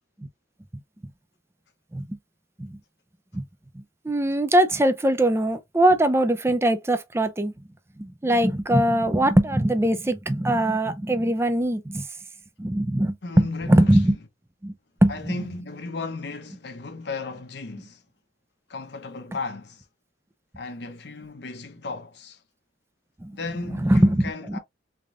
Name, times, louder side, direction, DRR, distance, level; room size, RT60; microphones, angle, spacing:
voice 1, 3.7-7.5 8.0-12.1 12.6-14.2 14.6-14.7 15.0-15.3 23.2-23.4 23.8-24.6, right 1 dB, 15° right, 0.4 m, -21 dB
voice 2, 13.2-14.1 15.1-18.0 18.7-19.9 20.6-22.4 23.3-24.6, left 3 dB, 60° left, 0.7 m, -35 dB
3.5 x 3.4 x 2.4 m
head